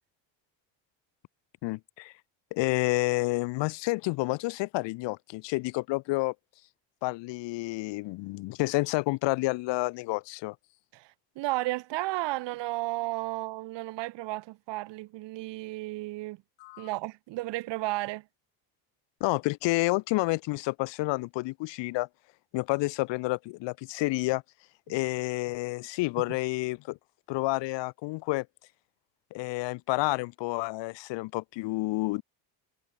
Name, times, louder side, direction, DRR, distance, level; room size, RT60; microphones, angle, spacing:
voice 1, 1.6-2.1 2.5-6.3 7.0-10.5 16.6-16.9 19.2-22.1 22.5-24.4 24.9-27.0 27.3-28.4 29.3-32.2, left 22 dB, 75° left, 1.4 m, -29 dB
voice 2, 11.4-16.4 16.8-18.2, right 19 dB, 70° right, 7.0 m, -33 dB
cardioid pair, 160°, 44 cm